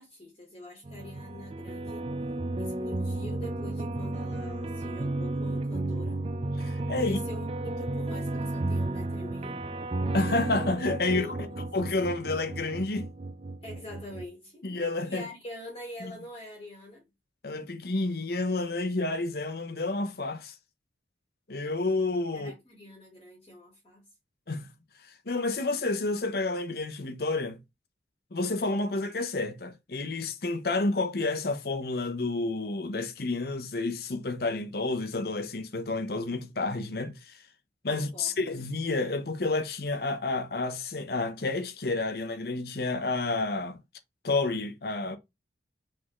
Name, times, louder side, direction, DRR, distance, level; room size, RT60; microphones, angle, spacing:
voice 1, 0.0-2.0 2.6-6.2 7.0-9.9 11.0-11.5 13.6-14.6 15.0-17.0 22.3-24.0 37.9-38.3, left 1 dB, 30° left, 1.4 m, -44 dB
sound 1, 0.8-14.3, right 2 dB, 30° right, 0.4 m, -33 dB
voice 2, 6.6-7.2 10.1-11.3 11.7-13.1 14.6-15.3 16.0-16.1 17.4-20.5 21.5-22.5 24.5-24.7 25.3-27.6 28.3-37.4 37.8-43.8 44.2-45.2, left 3 dB, 55° left, 0.8 m, -30 dB
4.3 x 3.7 x 3.0 m
head